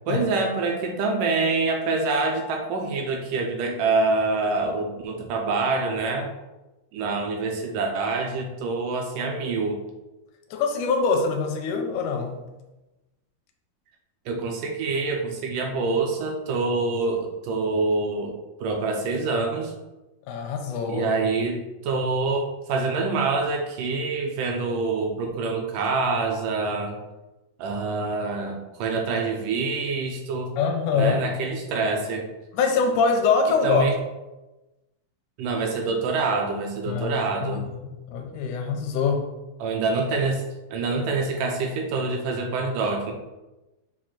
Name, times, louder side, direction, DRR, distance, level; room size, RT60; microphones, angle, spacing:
voice 1, 0.1-6.3 6.9-9.8 14.3-18.3 18.6-19.7 20.9-27.0 27.6-30.5 31.0-32.3 33.6-33.9 35.4-37.6 39.6-40.4 40.7-43.1, right 3 dB, 80° right, 2 dB, 2.0 m, -26 dB
voice 2, 10.5-12.4 20.3-21.1 30.6-31.2 32.5-33.8 36.9-39.2, left 5 dB, 85° left, 3 dB, 1.8 m, -24 dB
7.4 x 2.5 x 5.7 m, 1.1 s
omnidirectional pair, 4.3 m